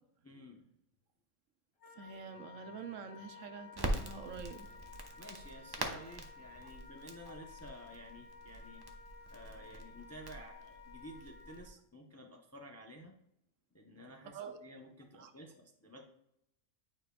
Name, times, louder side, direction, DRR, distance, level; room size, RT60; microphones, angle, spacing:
voice 1, 0.2-0.7 5.2-8.9 9.3-13.2 13.7-16.0, equal, 20° left, 0.4 m, -52 dB
Wind instrument woodwind instrument, 1.8-11.7, left 6 dB, 80° left, 1.7 m, -55 dB
voice 2, 1.9-4.7 7.3-7.4 14.3-14.6 15.1-15.3, right 6 dB, 80° right, 1.0 m, -47 dB
Crackle, 3.7-11.7, right 1 dB, 25° right, 0.6 m, -44 dB
9.0 x 5.0 x 2.3 m
omnidirectional pair, 1.3 m